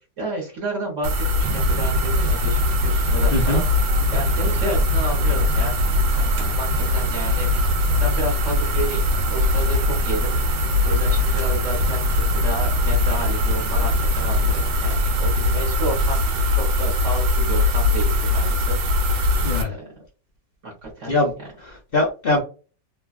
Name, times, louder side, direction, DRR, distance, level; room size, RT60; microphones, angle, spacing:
voice 1, 0.2-3.7 4.1-5.8 6.2-7.5 8.0-10.4 10.8-18.8 19.6-19.9 20.6-21.1, right 2 dB, 45° right, -4 dB, 1.3 m, -31 dB
sound 1, 1.0-19.6, left 2 dB, 85° right, 1.5 m, -21 dB
sound 2, 1.4-17.0, right 4 dB, 65° right, 1.4 m, -35 dB
voice 2, 3.3-3.6 19.4-19.7 21.1-21.3 21.6-22.4, left 2 dB, 60° left, -1 dB, 0.6 m, -22 dB
3.1 x 2.4 x 2.4 m, 0.34 s
omnidirectional pair, 2.0 m